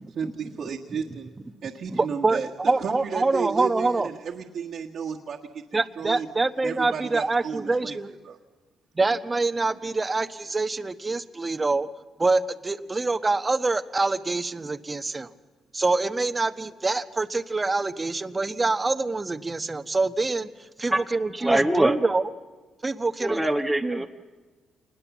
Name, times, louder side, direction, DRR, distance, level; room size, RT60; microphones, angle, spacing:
voice 1, 0.1-1.3 1.6-2.5 2.8-5.6 6.0-6.3 6.6-8.0 8.2-8.4, right 6 dB, 60° right, -2 dB, 1.7 m, -33 dB
voice 2, 1.9-4.1 5.7-8.1 9.0-11.9 12.2-15.3 15.7-20.5 20.8-22.3 22.8-23.5 23.8-24.1, right 3 dB, 25° right, 11 dB, 1.1 m, -25 dB
voice 3, 21.4-22.0 23.2-24.1, right 1 dB, ahead, 1 dB, 1.3 m, -23 dB
27.5 x 20.0 x 7.3 m, 1.3 s
cardioid pair, 90°, 0 cm